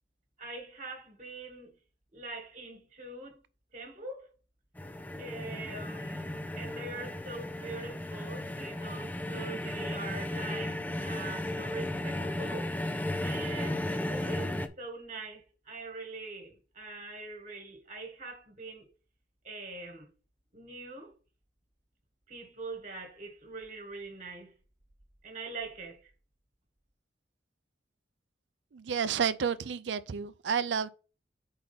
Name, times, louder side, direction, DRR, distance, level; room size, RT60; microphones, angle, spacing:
voice 1, 0.4-1.7 2.1-3.4 3.7-4.3 5.2-13.0 13.2-18.9 19.4-20.1 20.5-21.1 22.3-24.5 25.2-26.1, right 3 dB, 40° right, 1.6 m, -43 dB
sound 1, 4.8-14.7, left 1 dB, 10° left, 0.5 m, -35 dB
voice 2, 28.7-30.9, right 7 dB, 80° right, 0.4 m, -30 dB
4.8 x 4.3 x 5.8 m
head